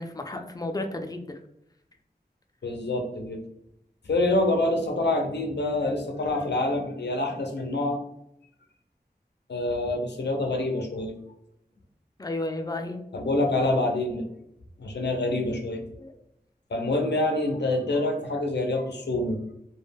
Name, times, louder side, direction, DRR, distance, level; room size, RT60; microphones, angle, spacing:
voice 1, 0.0-1.4 12.2-13.0 16.0-16.1, left 2 dB, 20° left, 5 dB, 0.4 m, -32 dB
voice 2, 2.6-3.4 4.1-8.0 9.5-11.1 13.1-14.3 14.8-15.8 16.7-19.4, left 2 dB, 90° left, 3 dB, 0.5 m, -26 dB
2.2 x 2.1 x 3.3 m, 0.79 s
wide cardioid pair, 40°, 17 cm